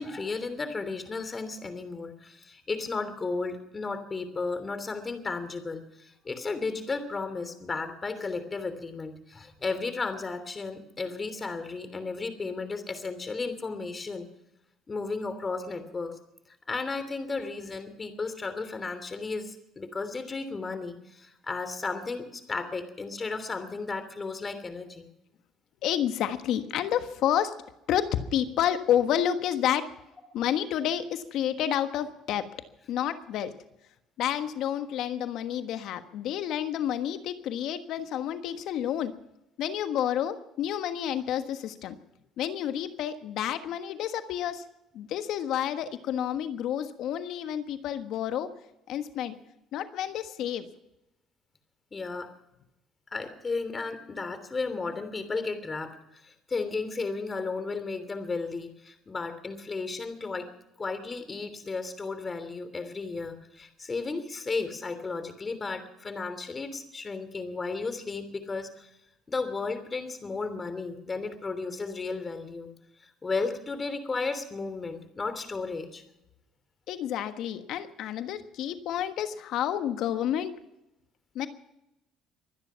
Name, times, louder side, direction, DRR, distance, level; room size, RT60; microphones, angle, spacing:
voice 1, 0.0-14.3 14.9-16.2 16.7-25.1 51.9-52.3 53.1-60.5 60.8-68.9 69.3-72.7 73.0-76.0, left 4 dB, 30° left, 10 dB, 3.1 m, -34 dB
voice 2, 25.8-27.6 27.9-29.9 30.3-32.5 32.9-33.6 34.2-39.1 39.6-42.0 42.4-44.6 44.9-48.5 48.9-49.4 49.7-50.7 76.9-80.6 81.3-81.5, left 10 dB, 70° left, 9 dB, 1.4 m, -29 dB
24.0 x 10.0 x 5.8 m, 0.87 s
supercardioid pair, 80°, 0 cm